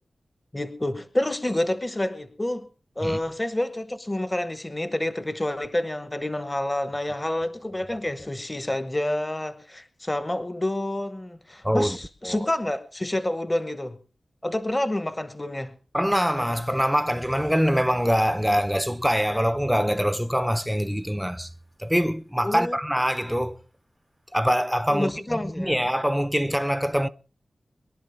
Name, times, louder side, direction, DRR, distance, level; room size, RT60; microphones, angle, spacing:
voice 1, 0.5-2.7 3.0-14.0 14.4-15.7 22.4-22.8 24.9-25.8, left 1 dB, 20° left, 1.1 m, -28 dB
voice 2, 11.6-12.0 12.2-12.4 15.9-21.5 21.8-23.6 24.3-27.1, equal, ahead, 0.7 m, -24 dB
23.0 x 11.5 x 3.5 m
wide cardioid pair, 85°, 0 cm